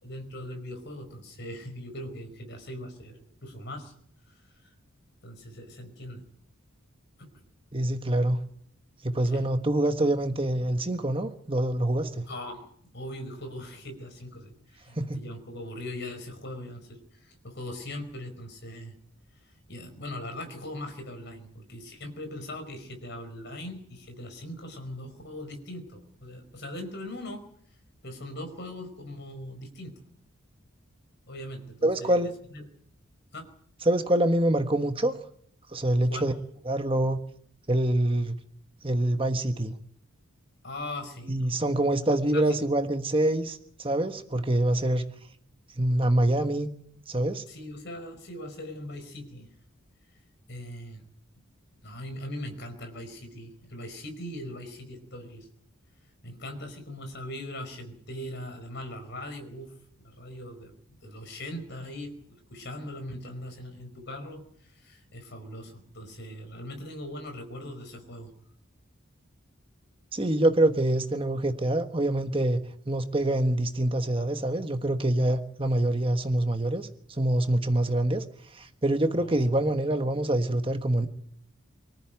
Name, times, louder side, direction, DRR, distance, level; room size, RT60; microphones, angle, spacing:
voice 1, 0.0-3.9 4.6-4.7 5.2-6.3 7.2-7.3 9.2-9.5 12.3-12.7 12.9-18.9 19.4-27.4 28.0-30.0 31.3-32.2 32.5-32.6 33.3-33.5 36.1-36.3 40.6-41.6 42.3-42.7 47.5-49.5 50.5-51.0 51.8-55.5 56.2-60.7 61.0-68.3 79.1-79.3, left 1 dB, 50° left, 4.9 m, -40 dB
voice 2, 7.7-8.4 9.0-12.2 14.9-15.2 31.8-32.3 33.8-35.1 35.7-36.3 36.6-37.2 37.7-38.4 38.8-39.7 41.3-45.0 45.8-46.7 47.1-47.4 70.1-72.6 72.9-81.1, right 1 dB, 25° right, 1.4 m, -25 dB
25.0 x 14.0 x 9.1 m
head